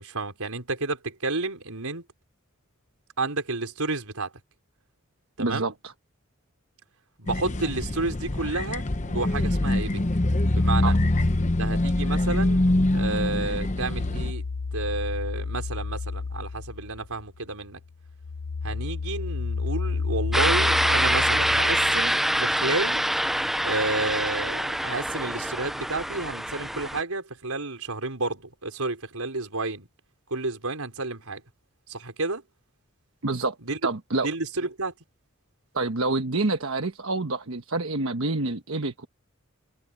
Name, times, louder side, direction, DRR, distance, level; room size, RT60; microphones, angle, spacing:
voice 1, 0.0-2.0 3.2-4.3 5.4-5.7 7.2-10.0 10.5-10.9 11.4-12.6 12.9-14.4 14.7-17.8 18.6-23.0 23.6-29.9 30.3-31.4 31.9-32.4 33.6-33.8 34.1-34.9, right 3 dB, 90° right, 4.8 m, -31 dB
voice 2, 5.4-5.7 10.8-11.0 33.2-33.6 33.8-34.3 35.7-39.1, right 2 dB, 70° right, 1.3 m, -27 dB
sound 1, 7.3-14.3, left 1 dB, 35° left, 0.9 m, -24 dB
sound 2, 13.5-17.4 17.8-22.3, left 4 dB, 65° left, 0.6 m, -32 dB
sound 3, 20.3-27.0, equal, ahead, 0.4 m, -25 dB
head